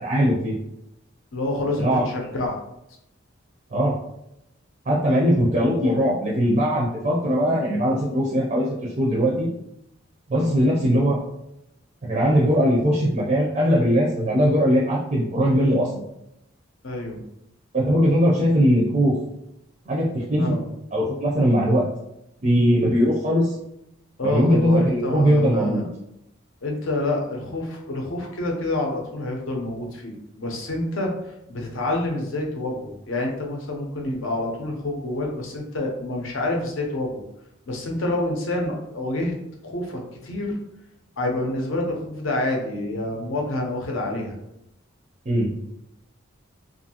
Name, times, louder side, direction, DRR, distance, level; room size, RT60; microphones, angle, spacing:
voice 1, 0.0-0.5 1.8-2.0 3.7-4.0 4.9-9.5 10.3-11.2 12.0-15.9 17.7-19.1 19.9-20.5 20.9-21.9 22.4-23.6 24.2-25.8 45.3-45.5, equal, 35° right, -5 dB, 0.4 m, -20 dB
voice 2, 1.3-2.6 10.3-10.5 16.8-17.2 20.4-20.6 24.2-25.8 26.6-31.1 31.5-37.2 37.7-39.3 39.6-40.6 41.2-44.4, left 2 dB, 75° left, 0 dB, 0.6 m, -27 dB
2.6 x 2.5 x 2.7 m, 0.82 s
head